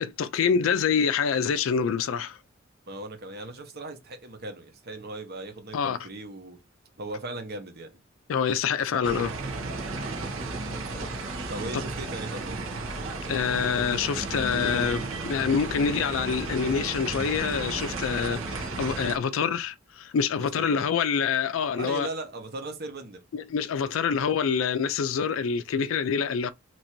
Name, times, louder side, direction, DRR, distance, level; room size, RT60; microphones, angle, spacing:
voice 1, 0.0-2.4 5.7-6.0 8.3-9.3 13.3-22.1 23.3-26.5, left 6 dB, 75° left, 0.4 m, -26 dB
voice 2, 2.9-6.6 7.0-8.0 11.5-12.6 20.6-20.9 21.8-23.2, right 2 dB, 50° right, 1.0 m, -38 dB
sound 1, 9.0-19.2, right 3 dB, 85° right, 1.1 m, -33 dB
3.0 x 2.6 x 4.4 m
head